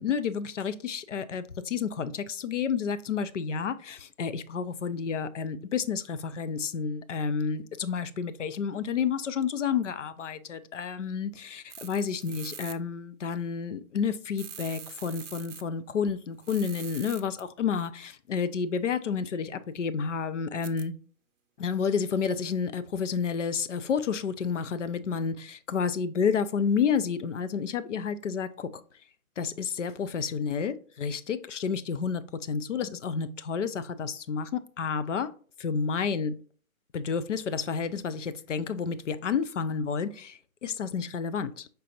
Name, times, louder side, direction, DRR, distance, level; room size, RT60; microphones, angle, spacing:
voice 1, 0.0-20.9 21.6-28.8 29.4-35.3 35.6-36.4 36.9-41.7, left 6 dB, 60° left, 0.5 m, -30 dB
sound 1, 11.7-12.8 14.4-15.6 16.4-17.4 20.6-20.8, right 7 dB, 60° right, 0.6 m, -43 dB
5.2 x 3.3 x 2.8 m
hypercardioid pair, 170°, 42 cm